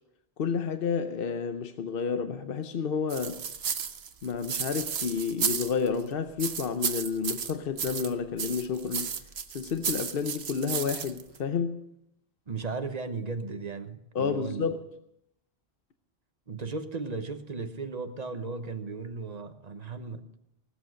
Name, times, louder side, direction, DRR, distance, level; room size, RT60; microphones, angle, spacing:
voice 1, 0.4-3.4 4.2-9.1 9.5-11.8 14.1-14.8, left 6 dB, 65° left, 0.9 m, -30 dB
sound 1, 3.1-6.0 6.4-8.1 8.4-11.4, right 7 dB, 85° right, 1.2 m, -33 dB
voice 2, 12.5-14.7 16.5-20.3, right 4 dB, 40° right, 1.1 m, -36 dB
19.0 x 8.3 x 6.4 m
omnidirectional pair, 1.0 m